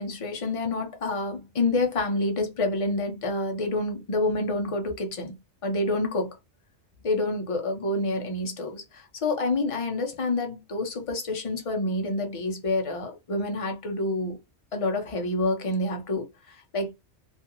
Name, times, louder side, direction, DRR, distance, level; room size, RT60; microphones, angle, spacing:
voice 1, 0.0-5.3 5.6-6.4 7.0-14.4 14.7-16.9, left 2 dB, 40° left, 0.5 m, -28 dB
2.5 x 2.3 x 2.8 m
omnidirectional pair, 1.2 m